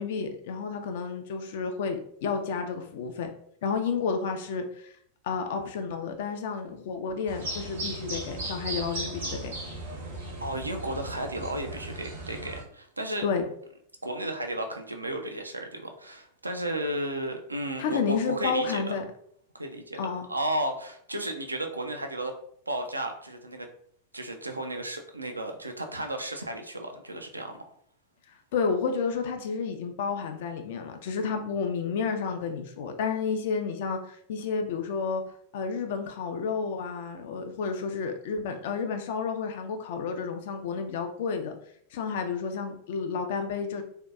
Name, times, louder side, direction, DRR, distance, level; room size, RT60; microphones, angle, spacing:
voice 1, 0.0-3.3 3.6-4.9 5.2-9.5 13.2-13.4 17.8-19.0 20.0-20.3 28.5-35.2 35.5-41.6 41.9-43.8, left 5 dB, 55° left, 5 dB, 0.3 m, -31 dB
sound 1, 7.3-12.6, right 2 dB, 65° right, 0.7 m, -36 dB
voice 2, 10.4-13.3 14.0-18.9 19.5-20.0 20.3-22.3 22.7-23.7 24.1-27.6, right 1 dB, 80° right, 5 dB, 0.3 m, -33 dB
2.6 x 2.2 x 2.3 m, 0.66 s
figure-of-eight pair, 90°, 0 cm